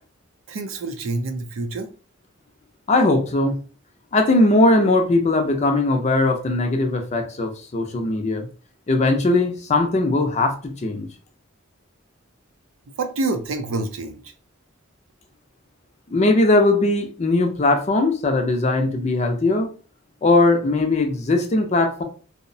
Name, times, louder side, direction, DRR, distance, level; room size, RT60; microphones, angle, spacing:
voice 1, 0.5-1.9 13.0-14.3, right 2 dB, 75° right, 0.5 m, -27 dB
voice 2, 2.9-3.6 4.1-8.5 8.9-11.1 16.1-19.7 20.2-22.0, left 2 dB, 35° left, 0.4 m, -19 dB
2.7 x 2.0 x 2.6 m
head